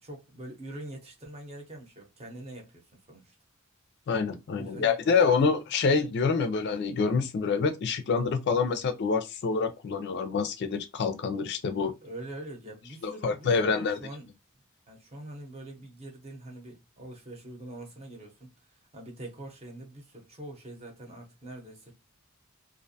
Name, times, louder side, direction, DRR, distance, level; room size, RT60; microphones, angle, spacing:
voice 1, 0.0-3.3 4.5-5.5 11.8-14.3 14.9-18.5 18.9-21.9, right 1 dB, 30° right, 0.8 m, -44 dB
voice 2, 4.1-11.9 13.0-14.0, left 5 dB, 55° left, 0.4 m, -26 dB
2.5 x 2.1 x 2.6 m
head